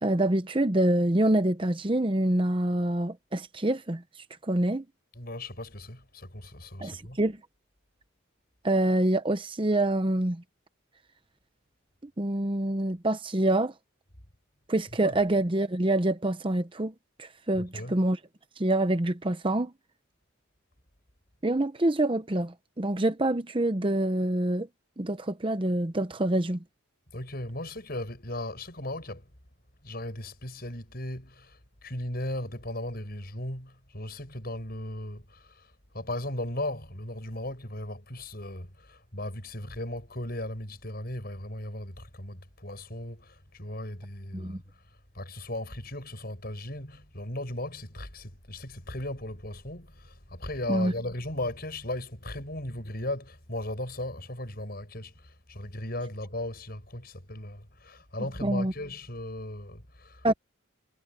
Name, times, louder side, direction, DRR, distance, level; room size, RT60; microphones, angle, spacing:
voice 1, 0.0-4.0 4.4-4.8 6.8-7.4 8.6-10.4 12.2-13.7 14.7-16.9 17.2-18.2 18.6-19.7 21.4-24.7 25.0-26.6 44.3-44.6 50.7-50.9 58.4-58.7 60.2-60.3, right 1 dB, 25° right, 0.8 m, -26 dB
voice 2, 5.2-7.2 15.0-15.2 17.5-18.0 27.1-29.3 29.8-44.6 45.1-60.3, left 1 dB, 50° left, 7.2 m, -37 dB
head